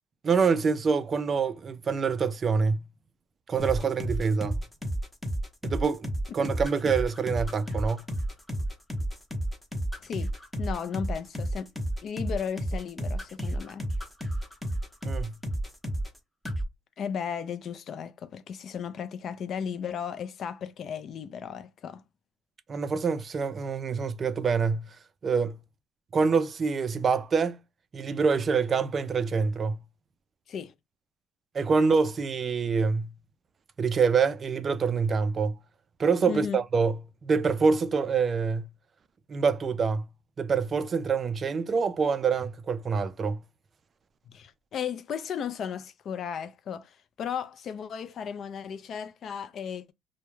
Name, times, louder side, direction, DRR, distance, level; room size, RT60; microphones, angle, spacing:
voice 1, 0.2-2.8 3.5-4.6 5.6-8.0 15.0-15.4 22.7-24.9 25.2-25.6 26.1-27.6 27.9-29.8 31.5-33.1 33.8-35.6 36.0-38.7 39.3-40.1 40.4-43.4, right 5 dB, 35° right, 0.3 m, -26 dB
sound 1, 3.6-16.2 16.5-16.7, right 1 dB, 5° left, 0.7 m, -31 dB
voice 2, 10.6-11.7 12.0-13.9 17.0-22.0 30.5-30.7 36.3-36.6 44.3-49.9, left 7 dB, 50° left, 0.3 m, -35 dB
2.2 x 2.1 x 3.0 m
cardioid pair, 120°, 0 cm